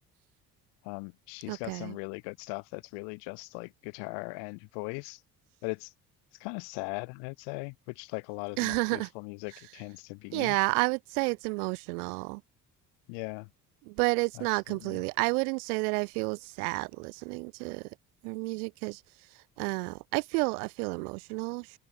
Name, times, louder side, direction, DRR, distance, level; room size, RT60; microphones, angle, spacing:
voice 1, 0.8-5.2 5.6-5.9 6.4-10.6 13.1-13.5 14.7-15.0, left 36 dB, 65° left, 1.3 m, -39 dB
voice 2, 1.5-2.0 8.6-9.1 10.3-12.4 13.8-17.9 18.2-19.0 19.3-21.8, right 30 dB, 65° right, 0.7 m, -31 dB
open air
figure-of-eight pair, 50°, 47 cm